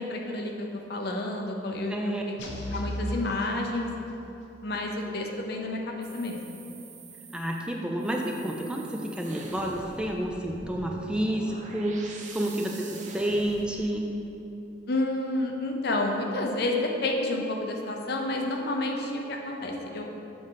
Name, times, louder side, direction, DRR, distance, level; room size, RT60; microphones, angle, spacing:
voice 1, 0.0-2.4 2.7-3.9 4.6-6.6 14.9-20.1, left 2 dB, 60° left, 1 dB, 0.7 m, -30 dB
voice 2, 1.9-2.2 7.3-14.1, right 1 dB, 5° right, 0 dB, 0.4 m, -30 dB
sound 1, 2.4-4.3, left 1 dB, 90° left, 0.9 m, -36 dB
sound 2, 6.0-13.6, right 3 dB, 40° right, 0.6 m, -46 dB
7.1 x 3.8 x 5.6 m, 2.9 s
head